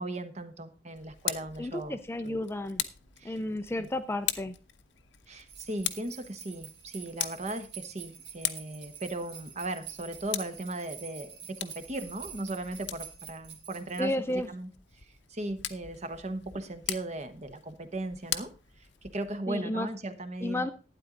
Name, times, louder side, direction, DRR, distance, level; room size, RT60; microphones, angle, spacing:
voice 1, 0.0-2.4 3.2-3.4 3.8-3.9 5.3-20.7, right 2 dB, 35° right, 9 dB, 1.1 m, -37 dB
Tick, 0.9-19.4, left 12 dB, 70° left, 0.8 m, -41 dB
voice 2, 1.6-2.8 3.2-4.6 14.0-14.5 19.5-19.9 20.4-20.7, left 1 dB, 15° left, 10 dB, 0.4 m, -32 dB
sound 1, 5.5-14.0, right 7 dB, 60° right, 2.0 m, -47 dB
12.0 x 9.3 x 3.8 m, 0.35 s
head